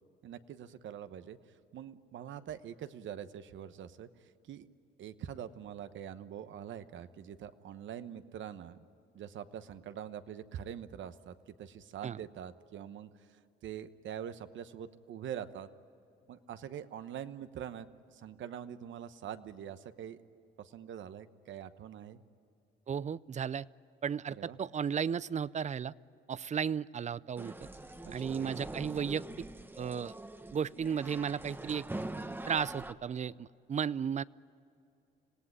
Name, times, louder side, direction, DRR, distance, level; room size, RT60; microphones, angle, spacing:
voice 1, 0.2-1.4 1.7-4.7 5.0-8.8 9.1-15.7 16.3-20.2 20.6-22.2 24.3-24.6 28.0-28.4, right 9 dB, 70° right, 11 dB, 1.1 m, -44 dB
voice 2, 22.9-23.7 24.0-25.9 26.3-27.7 28.1-29.2 29.8-30.1 30.5-31.9 32.5-34.2, right 7 dB, 35° right, 20 dB, 0.5 m, -34 dB
sound 1, 27.4-32.9, right 2 dB, 10° right, 1.1 m, -43 dB
26.5 x 18.0 x 9.8 m, 2.7 s
cardioid pair, 90°, 20 cm